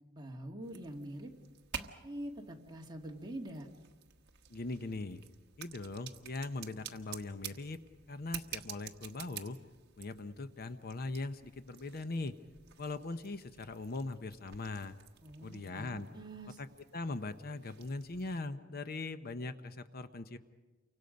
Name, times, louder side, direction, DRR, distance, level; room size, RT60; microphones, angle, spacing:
voice 1, 0.1-1.3 1.7-3.7 15.2-16.6, right 1 dB, 20° right, 0 dB, 2.3 m, -45 dB
sound 1, 0.6-18.4, right 8 dB, 55° right, 1.3 m, -51 dB
voice 2, 4.5-5.2 5.6-7.8 8.1-9.6 10.0-12.3 12.8-14.9 15.4-16.1 16.6-16.7 16.9-20.4, left 3 dB, 50° left, 10 dB, 0.8 m, -40 dB
29.5 x 25.0 x 5.3 m, 1.3 s
head